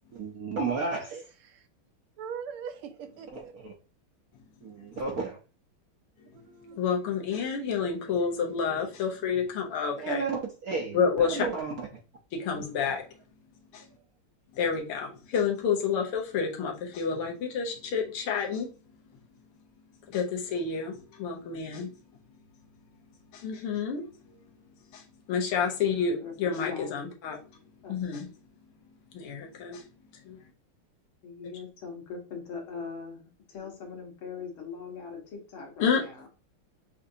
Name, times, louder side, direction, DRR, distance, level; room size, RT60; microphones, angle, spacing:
voice 1, 0.1-1.1 3.3-3.7 4.6-5.4 10.0-11.7 12.5-12.6, right 4 dB, 65° right, 0.9 m, -32 dB
voice 2, 1.1-1.7 2.2-3.5 6.3-6.8, right 7 dB, 80° right, 1.6 m, -41 dB
voice 3, 6.7-10.2 10.9-11.5 12.3-13.0 13.7-13.9 14.5-18.7 20.1-21.9 23.3-24.4 24.9-27.4 27.9-28.3 29.1-29.9 30.3-30.4 35.8-36.0, left 6 dB, 85° left, 1.9 m, -29 dB
voice 4, 26.2-27.0 27.8-28.0 31.2-36.3, left 5 dB, 70° left, 2.2 m, -41 dB
6.5 x 2.5 x 2.7 m
omnidirectional pair, 2.4 m